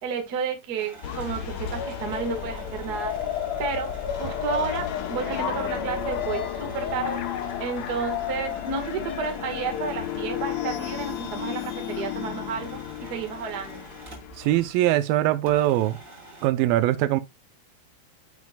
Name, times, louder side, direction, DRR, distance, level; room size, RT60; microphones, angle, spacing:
voice 1, 0.0-3.1 3.6-3.9 4.2-7.2 7.6-13.9, right 6 dB, 70° right, 0.9 m, -31 dB
sound 1, 0.8-14.5 14.8-14.9 15.4-16.5, right 2 dB, 20° right, 2.9 m, -47 dB
sound 2, 1.0-14.7, left 9 dB, 80° left, 1.5 m, -32 dB
voice 2, 14.4-16.0 16.4-17.2, right 14 dB, 85° right, 2.1 m, -22 dB
9.4 x 7.4 x 2.3 m
omnidirectional pair, 4.7 m